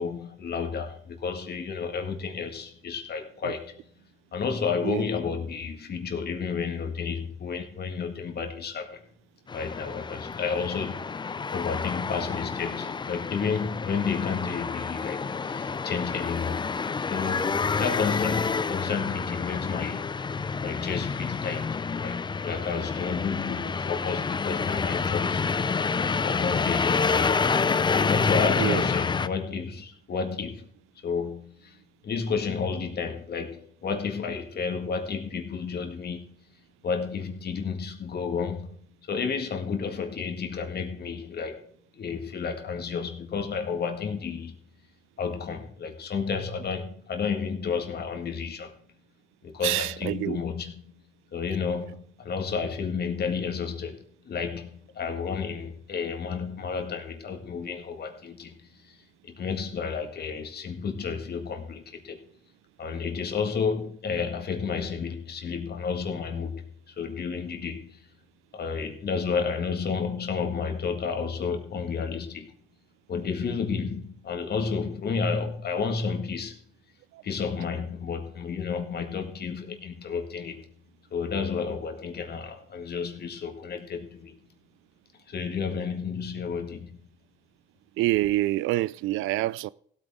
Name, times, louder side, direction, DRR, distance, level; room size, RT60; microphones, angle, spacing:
voice 1, 0.0-3.8 4.3-9.1 9.5-11.1 11.5-16.7 17.1-25.8 26.1-27.5 28.0-30.7 31.0-31.8 32.0-36.3 36.8-44.6 45.2-48.8 49.4-50.9 51.3-59.0 59.2-62.2 62.8-68.0 68.5-72.5 73.1-76.6 77.2-80.6 81.1-84.4 85.3-87.0, left 5 dB, 55° left, 1.9 m, -31 dB
sound 1, 9.5-29.3, left 5 dB, 25° left, 0.5 m, -28 dB
voice 2, 49.6-50.4 77.1-77.2 88.0-89.7, right 16 dB, 90° right, 0.4 m, -26 dB
16.0 x 8.8 x 3.7 m
cardioid pair, 90°, 20 cm